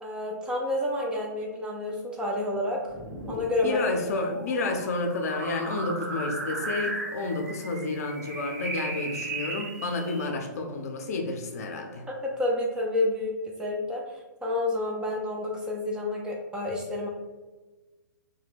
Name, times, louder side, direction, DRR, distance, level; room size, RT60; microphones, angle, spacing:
voice 1, 0.0-2.8 3.3-3.8 12.1-17.1, left 2 dB, 10° right, -2 dB, 0.3 m, -29 dB
sound 1, 2.9-10.3, right 2 dB, 50° right, 0.8 m, -36 dB
voice 2, 3.6-12.0, left 2 dB, 55° left, 3 dB, 0.5 m, -30 dB
2.8 x 2.2 x 3.2 m, 1.2 s
figure-of-eight pair, 120°, 10 cm